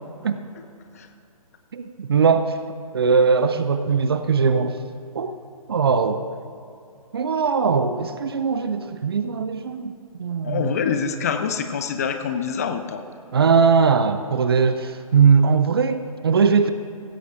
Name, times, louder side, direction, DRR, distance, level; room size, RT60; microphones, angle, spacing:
voice 1, 1.7-2.6 2.9-4.8 5.1-5.4 5.7-6.2 7.1-10.8 13.3-16.7, right 5 dB, 40° right, 10 dB, 0.6 m, -20 dB
voice 2, 10.4-13.0, left 6 dB, 25° left, 8 dB, 0.6 m, -25 dB
16.5 x 15.0 x 2.5 m, 2.6 s
figure-of-eight pair, 140°, 19 cm